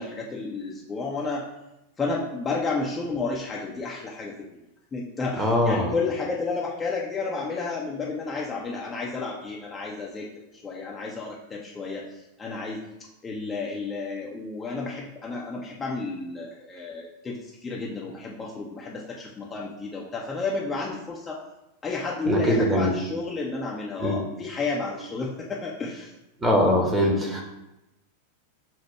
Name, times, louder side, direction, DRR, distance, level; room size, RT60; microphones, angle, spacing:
voice 1, 0.0-1.5 2.0-4.3 4.9-10.3 10.5-12.8 13.2-21.4 21.8-26.1, left 3 dB, 20° left, -3 dB, 0.6 m, -31 dB
voice 2, 5.4-5.9 22.3-22.9 24.0-24.2 26.4-27.4, left 1 dB, 10° right, -1 dB, 1.0 m, -22 dB
4.5 x 2.2 x 4.5 m, 0.93 s
figure-of-eight pair, 90°, 0 cm